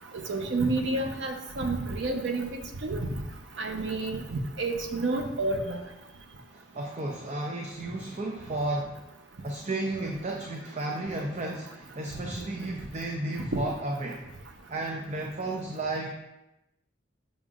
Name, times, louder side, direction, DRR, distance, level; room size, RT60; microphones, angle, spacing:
voice 1, 0.1-2.5 2.8-3.1 3.6-5.8, right 2 dB, 75° right, 4 dB, 0.7 m, -29 dB
voice 2, 6.5-9.0 9.4-14.2 14.7-16.1, right 2 dB, 40° right, 0 dB, 0.6 m, -33 dB
7.2 x 6.2 x 2.4 m, 0.94 s
head